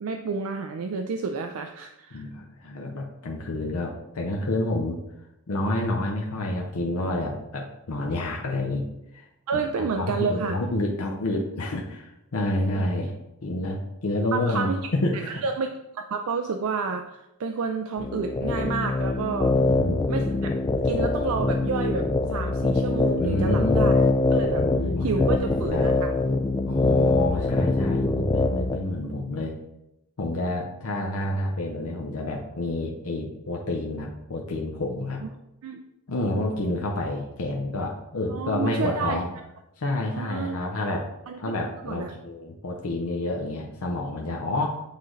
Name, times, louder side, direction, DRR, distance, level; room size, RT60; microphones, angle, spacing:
voice 1, 0.0-2.3 9.5-10.6 12.7-12.9 14.3-14.9 15.3-15.7 15.9-19.5 20.1-20.6 20.8-24.1 24.3-24.6 25.0-26.2 35.2-35.3 35.6-35.8 38.3-39.2 40.1-40.6 41.3-41.4 41.8-42.1, right 5 dB, 70° right, 5 dB, 0.4 m, -30 dB
voice 2, 2.1-5.0 5.5-8.8 9.1-9.3 9.5-13.1 13.4-15.4 19.5-20.0 23.2-23.9 24.5-25.9 26.7-29.5 30.2-35.2 36.1-39.3 39.8-41.1 41.4-44.8, left 1 dB, 70° left, 0 dB, 0.7 m, -29 dB
sound 1, 18.0-28.8, left 2 dB, 20° left, 0.3 m, -24 dB
8.2 x 3.8 x 3.1 m, 0.88 s
head